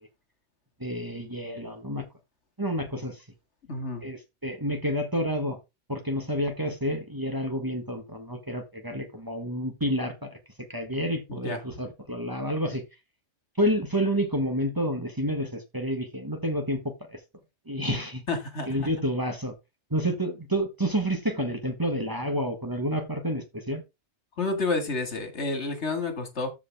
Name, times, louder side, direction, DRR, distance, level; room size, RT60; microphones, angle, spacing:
voice 1, 0.8-2.1 2.6-3.2 4.0-5.6 5.9-10.4 10.7-12.8 13.6-17.2 17.7-18.2 18.7-19.5 19.9-23.8, equal, 20° right, 1.5 m, -29 dB
voice 2, 3.7-4.0 11.3-11.6 18.3-18.7 24.4-26.5, left 3 dB, 70° left, 2.4 m, -29 dB
14.0 x 5.0 x 3.5 m
omnidirectional pair, 1.2 m